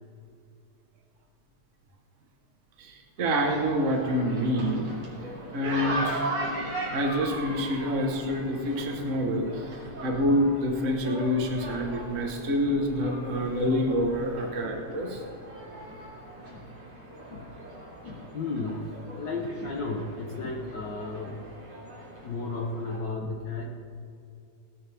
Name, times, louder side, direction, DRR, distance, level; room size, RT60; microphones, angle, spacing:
sound 1, 3.2-23.0, right 1 dB, 50° right, 4.2 m, -39 dB
voice 1, 3.2-4.9 5.5-6.3 6.9-9.6 10.0-15.2, equal, 70° right, 1 dB, 0.7 m, -27 dB
voice 2, 18.0-21.3 22.2-23.6, left 3 dB, 70° left, 0 dB, 1.0 m, -34 dB
17.5 x 12.5 x 3.5 m, 2.5 s
omnidirectional pair, 3.6 m